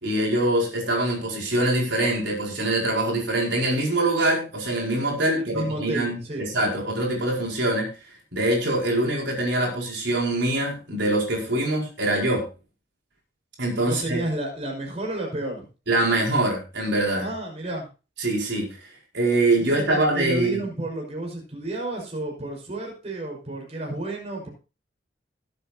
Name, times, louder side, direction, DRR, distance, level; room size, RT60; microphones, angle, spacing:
voice 1, 0.0-7.9 8.3-12.4 13.6-14.2 15.9-17.3 18.2-18.7 19.1-20.6, right 1 dB, 70° right, -2 dB, 5.0 m, -24 dB
voice 2, 5.3-6.4 13.8-15.6 17.2-17.9 19.6-24.5, right 2 dB, 35° right, -1 dB, 5.3 m, -31 dB
20.0 x 8.2 x 2.9 m, 0.33 s
head